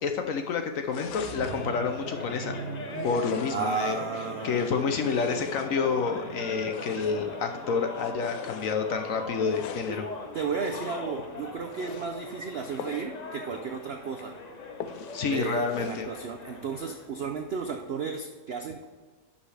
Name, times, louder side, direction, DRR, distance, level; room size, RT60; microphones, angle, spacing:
voice 1, 0.0-2.6 3.0-4.0 4.4-10.0 15.1-16.1, left 5 dB, 65° left, 6 dB, 0.9 m, -29 dB
sound 1, 0.8-17.1, left 3 dB, 40° left, 0.6 m, -41 dB
sound 2, 0.9-1.7 2.9-3.8 4.4-6.0 6.6-7.3 7.9-8.8 9.4-10.0 10.6-11.1 11.6-12.1 12.8-13.1 13.5-13.6 14.0-14.1 14.8-15.3 15.6-16.1, left 8 dB, 80° left, 1.2 m, -42 dB
sound 3, 1.0-13.0 14.3-17.9, right 2 dB, 45° right, 1.2 m, -44 dB
voice 2, 3.5-4.7 9.9-10.0 10.3-14.4 15.2-18.9, right 5 dB, 75° right, 5 dB, 0.5 m, -33 dB
11.0 x 5.5 x 3.3 m, 1.4 s
omnidirectional pair, 1.8 m